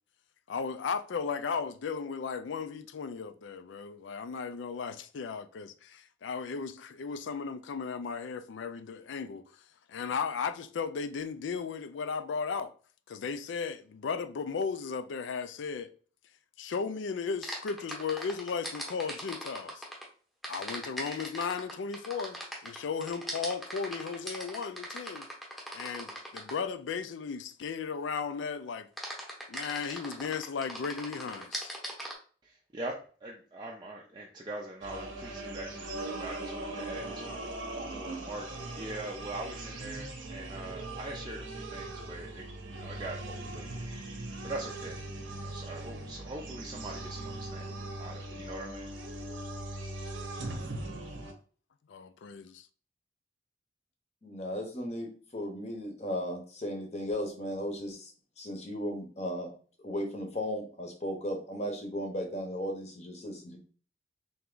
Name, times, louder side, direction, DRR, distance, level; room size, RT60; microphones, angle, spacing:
voice 1, 0.5-9.4 9.9-12.7 13.1-15.9 16.6-19.9 20.5-25.3 25.7-28.9 29.5-31.7 51.9-52.7, left 5 dB, 75° left, 0.4 m, -35 dB
sound 1, 17.4-20.0 20.4-26.7 29.0-32.1, equal, ahead, 0.8 m, -39 dB
voice 2, 32.4-32.9 33.2-38.5 38.8-45.0 45.3-49.0, right 2 dB, 25° right, 0.4 m, -42 dB
sound 2, 34.8-51.3, right 2 dB, 85° right, 0.9 m, -40 dB
voice 3, 54.2-58.1 58.4-59.5 59.8-63.6, equal, 35° left, 0.8 m, -36 dB
3.4 x 3.0 x 3.8 m
head